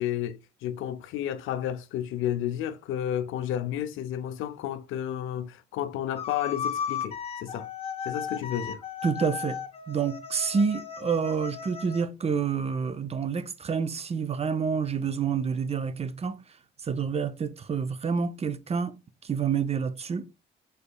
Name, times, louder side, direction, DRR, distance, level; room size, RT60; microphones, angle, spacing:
voice 1, 0.0-7.7 8.0-8.8, left 11 dB, 85° left, 0.5 m, -32 dB
sound 1, 6.2-12.1, left 7 dB, 30° left, 0.5 m, -35 dB
voice 2, 9.0-9.6 9.9-16.4 16.8-19.0 19.2-20.3, right 6 dB, 30° right, 0.5 m, -28 dB
5.2 x 4.1 x 2.2 m
cardioid pair, 90°, 20 cm